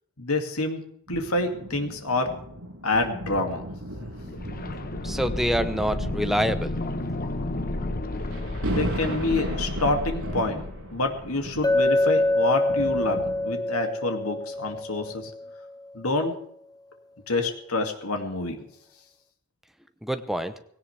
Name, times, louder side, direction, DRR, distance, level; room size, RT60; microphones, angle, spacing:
voice 1, 0.2-0.8 1.1-2.3 2.8-3.6 8.7-10.6 10.9-15.3 15.9-16.4 17.3-18.6, left 2 dB, 85° left, 4 dB, 2.5 m, -27 dB
sound 1, 1.1-13.9 14.6-14.7, equal, 70° right, 7.6 m, -36 dB
sound 2, 4.1-12.0 12.2-12.3, left 2 dB, 45° left, 1.1 m, -33 dB
voice 2, 5.0-6.7 20.0-20.5, equal, ahead, 9 dB, 0.9 m, -26 dB
Chink clink, 11.6-15.6, left 2 dB, 20° left, 0.6 m, -25 dB
19.0 x 17.0 x 3.4 m, 0.69 s
head